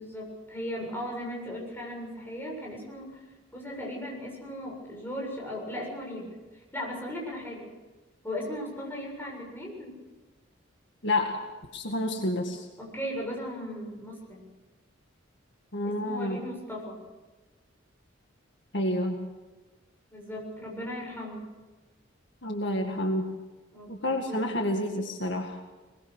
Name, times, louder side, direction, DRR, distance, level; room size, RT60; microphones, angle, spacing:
voice 1, 0.0-3.1 3.5-6.4 6.7-7.7 8.2-9.9 12.8-14.5 15.8-17.0 20.1-21.5 23.7-23.9 24.3-24.5, equal, 10° left, -1 dB, 7.3 m, -37 dB
voice 2, 11.0-11.5 11.7-12.7 15.7-16.4 18.7-19.3 22.4-23.4 23.9-25.6, left 1 dB, 65° left, 3 dB, 1.9 m, -29 dB
22.0 x 22.0 x 6.4 m, 1.2 s
head